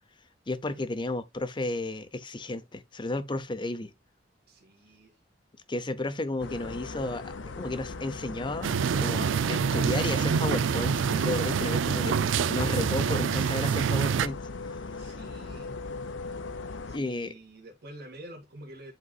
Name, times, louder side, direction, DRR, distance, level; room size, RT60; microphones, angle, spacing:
voice 1, 0.5-3.9 5.7-8.7 9.0-15.1 16.9-17.3, left 2 dB, 25° left, 0.6 m, -33 dB
voice 2, 4.5-5.1 15.0-15.8 16.9-18.9, right 1 dB, 60° right, 1.8 m, -48 dB
sound 1, 6.4-17.0, left 3 dB, 75° left, 0.7 m, -39 dB
sound 2, 8.6-14.3, right 6 dB, 85° right, 0.4 m, -26 dB
11.0 x 3.9 x 2.3 m
head